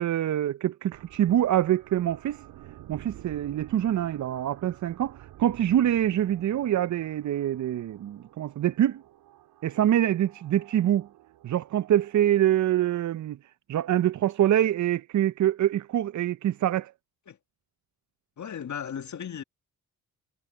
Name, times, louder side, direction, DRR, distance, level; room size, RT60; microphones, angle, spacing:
voice 1, 0.0-2.4 2.9-9.0 9.6-11.1 11.4-13.4 13.7-16.9, right 11 dB, 50° right, 0.6 m, -25 dB
sound 1, 0.9-12.9, right 14 dB, 85° right, 3.6 m, -51 dB
voice 2, 18.4-19.4, left 8 dB, 50° left, 1.9 m, -36 dB
supercardioid pair, 65°, 37 cm